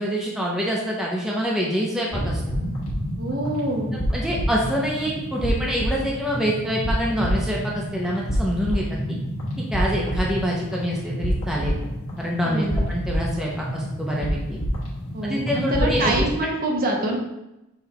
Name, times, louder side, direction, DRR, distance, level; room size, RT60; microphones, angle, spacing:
voice 1, 0.0-2.4 3.9-9.2 9.6-11.7 12.2-14.6 15.2-16.3, equal, ahead, -3 dB, 0.5 m, -26 dB
sound 1, 2.1-16.3, equal, 75° left, 1.1 m, -28 dB
voice 2, 3.2-3.9 12.4-12.8 15.1-17.2, right 1 dB, 40° right, 1 dB, 0.6 m, -25 dB
5.6 x 2.2 x 2.8 m, 0.93 s
head